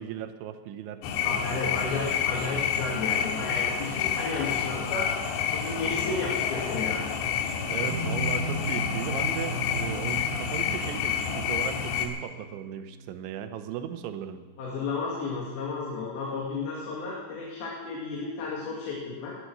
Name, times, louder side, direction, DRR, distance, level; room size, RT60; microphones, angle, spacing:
voice 1, 0.0-1.5 7.6-14.4, right 10 dB, 90° right, 9 dB, 3.3 m, -37 dB
sound 1, 1.0-12.1, left 7 dB, 90° left, 3.6 m, -29 dB
voice 2, 1.2-5.1 5.5-7.0 14.6-19.4, left 4 dB, 60° left, -3 dB, 3.8 m, -33 dB
sound 2, 7.9-13.5, right 1 dB, 60° right, 4.1 m, -37 dB
18.5 x 11.5 x 6.1 m, 1.4 s
omnidirectional pair, 5.2 m